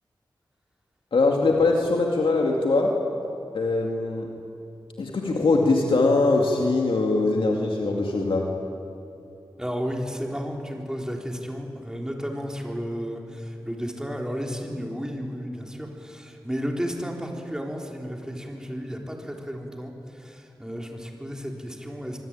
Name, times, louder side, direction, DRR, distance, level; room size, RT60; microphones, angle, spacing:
voice 1, 1.1-3.0 3.5-4.3 5.0-8.5, left 3 dB, 85° left, 0 dB, 2.5 m, -22 dB
voice 2, 9.6-22.2, equal, 5° right, 1 dB, 3.8 m, -33 dB
25.0 x 22.5 x 9.0 m, 2.7 s
wide cardioid pair, 95°, 9 cm